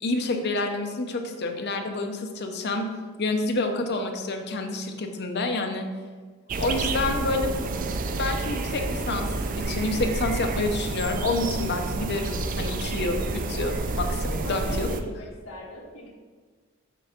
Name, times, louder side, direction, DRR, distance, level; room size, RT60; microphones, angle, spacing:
voice 1, 0.0-2.9 3.2-5.9 6.6-7.5 8.2-9.3 9.6-14.9, left 2 dB, 50° left, 4 dB, 0.7 m, -28 dB
sound 1, 6.5-15.0, right 3 dB, 40° right, 0.4 m, -29 dB
voice 2, 14.4-16.1, equal, 65° left, -4 dB, 1.5 m, -39 dB
6.1 x 3.5 x 5.8 m, 1.4 s
head